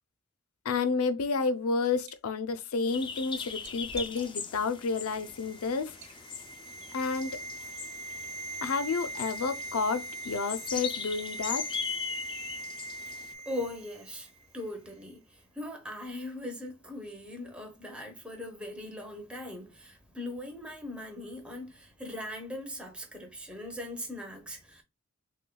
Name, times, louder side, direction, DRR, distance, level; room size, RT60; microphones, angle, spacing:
voice 1, 0.6-6.0 6.9-7.4 8.6-11.7, left 4 dB, 85° left, 0.5 m, -30 dB
Liquid, 1.3-2.2 2.6-4.7 5.1-5.3 5.9-6.2, right 4 dB, 70° right, 1.2 m, -50 dB
sound 1, 2.9-13.3, left 6 dB, 20° left, 0.3 m, -40 dB
sound 2, 4.8-14.0 14.3-14.4, right 2 dB, 85° right, 0.4 m, -41 dB
voice 2, 13.5-24.8, left 1 dB, 5° right, 0.8 m, -40 dB
6.1 x 2.2 x 2.2 m
head